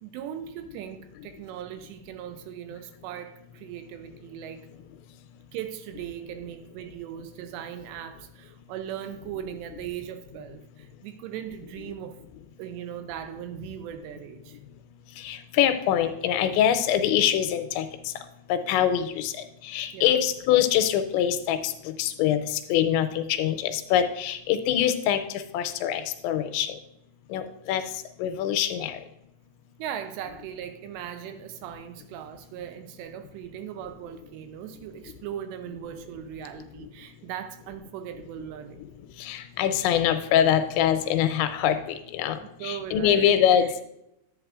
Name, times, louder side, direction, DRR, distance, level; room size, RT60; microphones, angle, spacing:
voice 1, 0.0-4.7 5.5-12.2 12.6-14.6 19.9-20.2 29.8-38.8 42.6-43.3 43.6-43.7, right 10 dB, 80° right, 8 dB, 2.7 m, -38 dB
voice 2, 15.2-17.9 18.5-19.3 19.6-21.7 22.0-25.2 25.5-26.7 27.3-27.8 28.2-29.0 39.2-43.8, left 10 dB, 85° left, 8 dB, 2.9 m, -24 dB
10.5 x 8.7 x 2.4 m, 0.82 s
omnidirectional pair, 5.2 m